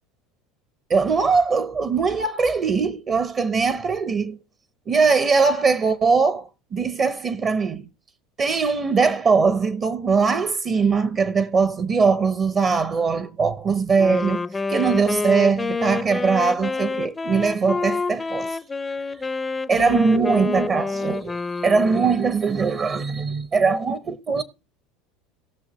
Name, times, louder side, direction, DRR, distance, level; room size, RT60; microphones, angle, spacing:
voice 1, 0.9-4.4 4.9-7.9 8.4-18.6 19.7-21.4 21.6-24.4, right 5 dB, 40° right, 0.8 m, -21 dB
Wind instrument woodwind instrument, 14.0-22.3, left 4 dB, 20° left, 0.5 m, -28 dB
18.5 x 6.3 x 3.1 m
hypercardioid pair, 80°, 0 cm